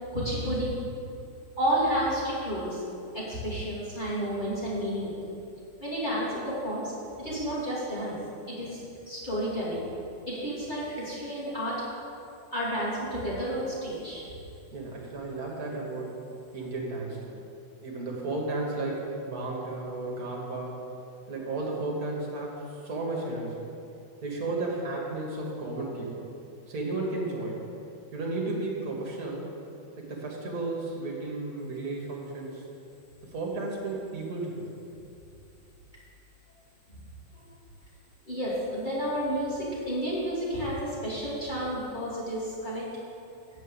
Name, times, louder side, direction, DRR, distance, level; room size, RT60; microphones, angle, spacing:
voice 1, 0.1-0.7 1.6-2.8 3.1-5.2 5.8-6.9 7.2-8.1 8.5-9.8 10.3-11.7 12.5-14.2 36.9-37.0 37.3-37.5 38.2-42.8, equal, 15° left, -8 dB, 2.6 m, -31 dB
voice 2, 14.7-16.2 16.5-17.4 17.8-20.8 21.3-23.7 24.2-26.3 26.7-27.6 28.1-29.5 30.0-32.6 33.3-34.8, right 2 dB, 45° right, -2 dB, 1.3 m, -33 dB
8.4 x 6.5 x 6.9 m, 2.6 s
omnidirectional pair, 3.4 m